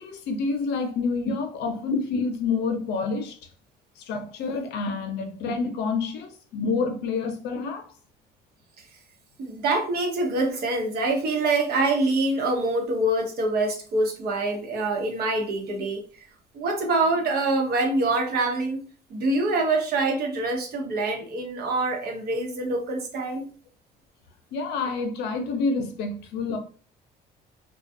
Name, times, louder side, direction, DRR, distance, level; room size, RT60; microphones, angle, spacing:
voice 1, 0.0-3.3 4.0-7.9 24.5-26.6, left 4 dB, 85° left, 0.6 m, -28 dB
voice 2, 9.4-16.0 16.5-18.8 19.1-23.5, right 2 dB, 65° right, 0.9 m, -25 dB
2.4 x 2.3 x 2.6 m
cardioid pair, 110°, 17 cm